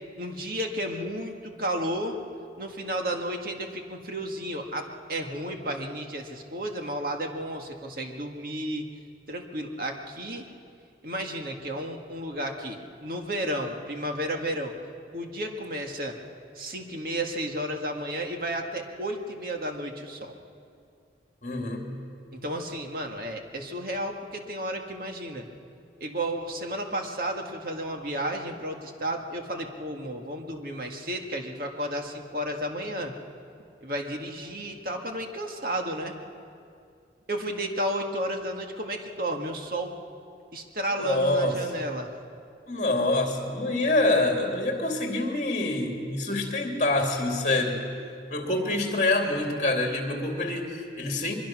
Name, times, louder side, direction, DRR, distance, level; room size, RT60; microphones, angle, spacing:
voice 1, 0.2-2.2 2.6-8.8 9.3-10.5 11.0-14.7 15.1-16.2 16.6-20.3 22.3-25.5 26.0-33.1 33.8-36.1 37.3-39.9 40.5-42.1, right 1 dB, 55° right, 3 dB, 1.9 m, -32 dB
voice 2, 21.4-21.9 40.9-41.6 42.7-47.8 48.3-51.4, left 2 dB, 40° left, 1 dB, 3.0 m, -26 dB
23.5 x 22.5 x 6.2 m, 2.4 s
head